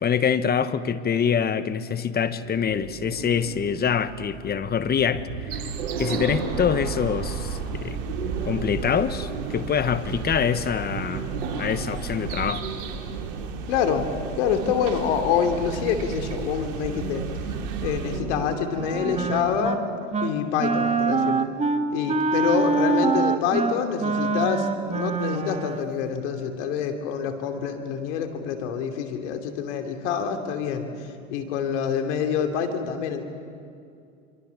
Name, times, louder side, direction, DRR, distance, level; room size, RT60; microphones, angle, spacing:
voice 1, 0.0-5.7 6.0-8.0 8.4-11.3 11.6-12.7, left 7 dB, 25° left, 12 dB, 1.3 m, -25 dB
sound 1, 2.4-19.6, right 4 dB, 70° right, 7.9 m, -35 dB
sound 2, 5.5-18.2, right 6 dB, 55° right, 3.2 m, -34 dB
voice 2, 13.7-14.1 14.4-17.3 17.8-19.8 20.2-21.5 21.9-33.2, left 7 dB, 70° left, 6 dB, 3.0 m, -26 dB
Wind instrument woodwind instrument, 18.7-19.8 20.1-20.4 20.6-25.9, right 4 dB, 15° right, 1.7 m, -24 dB
26.5 x 24.0 x 7.1 m, 2.4 s
hypercardioid pair, 95°, 37 cm